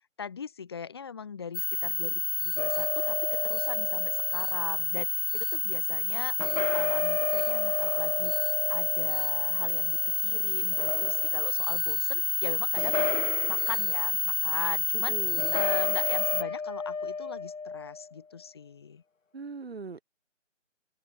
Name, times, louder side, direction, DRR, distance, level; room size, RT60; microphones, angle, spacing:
voice 1, 0.2-8.4 8.7-15.2 15.5-19.0, left 6 dB, 20° left, 1.9 m, -40 dB
sound 1, 1.5-16.4, left 4 dB, 45° left, 0.6 m, -29 dB
sound 2, 2.6-4.6 6.4-10.1 10.6-11.6 12.8-13.9 15.4-18.1, left 4 dB, 75° left, 2.0 m, -33 dB
voice 2, 14.9-15.6 19.3-20.0, right 4 dB, 50° right, 2.1 m, -40 dB
open air
figure-of-eight pair, 170°, 39 cm